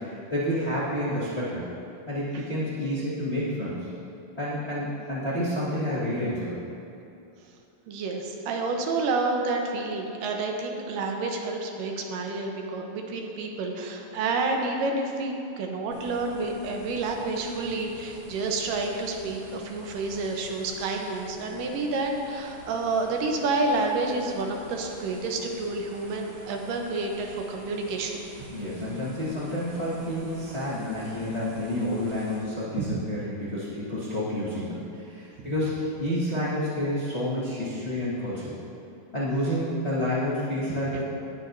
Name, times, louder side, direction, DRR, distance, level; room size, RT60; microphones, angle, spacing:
voice 1, 0.0-1.6 2.1-3.9 4.4-6.6 28.5-38.6 39.1-41.0, left 1 dB, 35° left, -10 dB, 1.0 m, -29 dB
voice 2, 7.9-28.3 32.8-33.0 35.4-35.5, right 3 dB, 85° right, 2 dB, 2.5 m, -29 dB
sound 1, 15.9-32.4, right 1 dB, 55° right, 1.1 m, -49 dB
18.0 x 7.1 x 2.6 m, 2.7 s
omnidirectional pair, 3.7 m